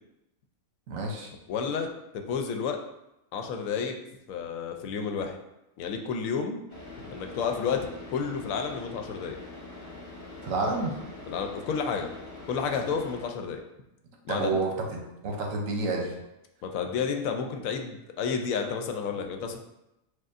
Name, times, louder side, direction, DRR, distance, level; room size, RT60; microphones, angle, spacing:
voice 1, 0.9-1.3 10.4-10.9 14.3-16.1, right 3 dB, 75° right, 0 dB, 1.2 m, -29 dB
voice 2, 1.5-1.9 2.1-2.8 3.3-4.0 4.3-5.4 5.8-6.6 7.0-9.4 11.3-12.1 12.5-13.6 14.2-14.6 16.6-19.6, left 6 dB, 80° left, 4 dB, 1.0 m, -31 dB
Car / Idling, 6.7-13.3, left 2 dB, 40° left, 0.9 m, -44 dB
6.3 x 2.3 x 2.5 m, 0.90 s
omnidirectional pair, 1.4 m